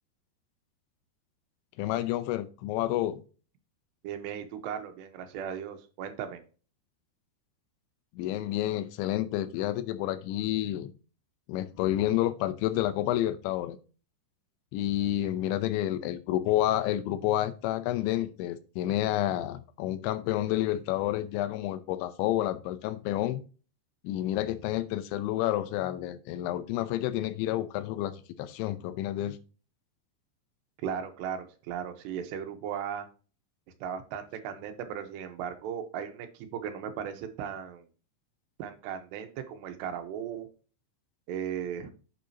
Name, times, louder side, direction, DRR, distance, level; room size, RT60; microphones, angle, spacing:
voice 1, 1.8-3.2 8.1-10.9 11.5-13.8 14.7-23.4 24.0-29.4, left 13 dB, 85° left, 3.0 m, -29 dB
voice 2, 4.0-6.4 30.8-33.1 33.8-37.9 38.6-40.5 41.3-41.9, right 8 dB, 75° right, 3.0 m, -36 dB
8.8 x 8.2 x 2.8 m
omnidirectional pair, 5.3 m